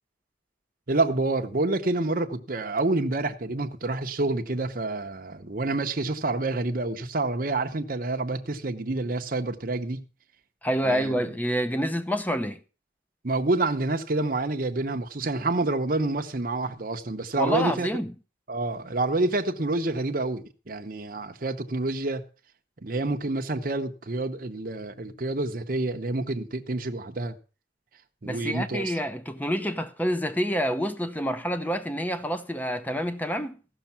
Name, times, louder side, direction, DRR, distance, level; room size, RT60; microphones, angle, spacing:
voice 1, 0.9-10.0 10.8-11.3 13.2-17.9 18.5-22.2 22.8-27.4 28.2-28.9, right 2 dB, 45° right, 0.8 m, -28 dB
voice 2, 10.6-12.6 17.4-18.1 28.2-33.6, equal, 10° left, 0.7 m, -27 dB
14.5 x 6.5 x 5.8 m
head